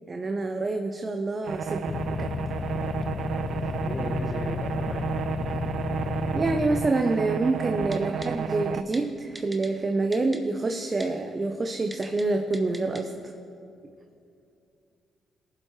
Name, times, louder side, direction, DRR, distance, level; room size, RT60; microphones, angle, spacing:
voice 1, 0.1-2.3 6.3-13.1, right 3 dB, 35° right, 5 dB, 0.7 m, -27 dB
sound 1, 1.5-8.8, right 7 dB, 65° right, 0.4 m, -32 dB
sound 2, 1.9-6.9, left 5 dB, 50° left, 0.4 m, -32 dB
voice 2, 3.6-5.0, left 1 dB, 30° left, -3 dB, 1.8 m, -38 dB
Typing, 7.9-8.3 8.9-9.0 9.3-9.7 10.1-10.4 11.0-11.1 11.9-12.2 12.5-13.0 13.4-13.5, right 2 dB, 20° right, 1.2 m, -41 dB
19.0 x 7.7 x 3.2 m, 2.6 s
supercardioid pair, 55°, 0 cm